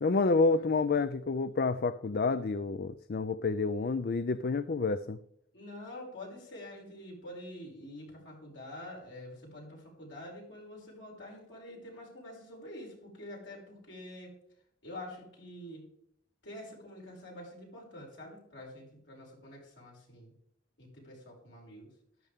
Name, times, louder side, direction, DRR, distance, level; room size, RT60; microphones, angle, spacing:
voice 1, 0.0-5.2, left 3 dB, 55° left, 14 dB, 0.5 m, -29 dB
voice 2, 5.5-14.3 14.8-15.9 16.4-20.3 20.8-21.9, left 1 dB, 70° left, -2 dB, 6.0 m, -47 dB
14.0 x 12.0 x 3.6 m, 0.74 s
head